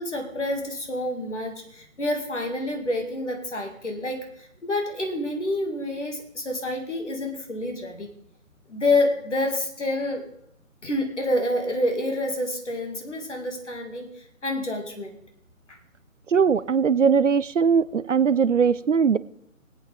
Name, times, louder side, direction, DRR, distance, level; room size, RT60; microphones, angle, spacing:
voice 1, 0.0-8.1 8.7-10.2 10.8-15.1 15.7-15.8, left 1 dB, 60° left, 4 dB, 2.3 m, -28 dB
voice 2, 16.3-19.2, right 6 dB, 65° right, 18 dB, 0.5 m, -20 dB
21.0 x 8.7 x 3.5 m, 0.75 s
figure-of-eight pair, 150°, 41 cm